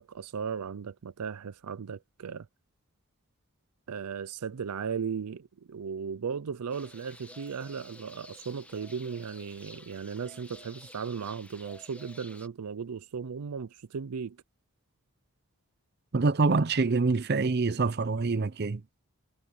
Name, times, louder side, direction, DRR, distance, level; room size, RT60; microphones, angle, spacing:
voice 1, 0.0-2.5 3.9-14.4, right 6 dB, 90° right, 0.5 m, -36 dB
sound 1, 6.7-12.5, left 1 dB, 5° left, 1.7 m, -51 dB
voice 2, 16.1-18.8, right 3 dB, 45° right, 0.6 m, -25 dB
head